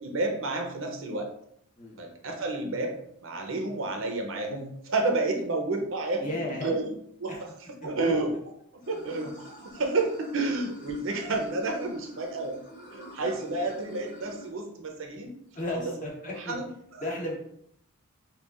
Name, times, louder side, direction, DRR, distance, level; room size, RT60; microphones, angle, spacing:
voice 1, 0.0-1.3 2.0-3.0 3.2-6.9 7.2-7.5 7.8-8.3 8.7-12.6 12.9-15.4 15.7-15.9 16.4-16.7 16.9-17.0, right 2 dB, 60° right, 3 dB, 0.6 m, -30 dB
voice 2, 6.2-6.8 7.3-7.4 7.8-8.2 15.5-16.5 17.0-17.4, left 2 dB, 35° left, -2 dB, 0.8 m, -34 dB
Water / Sink (filling or washing), 8.8-14.5, equal, 55° left, 1.2 m, -48 dB
5.4 x 2.3 x 2.4 m, 0.71 s
head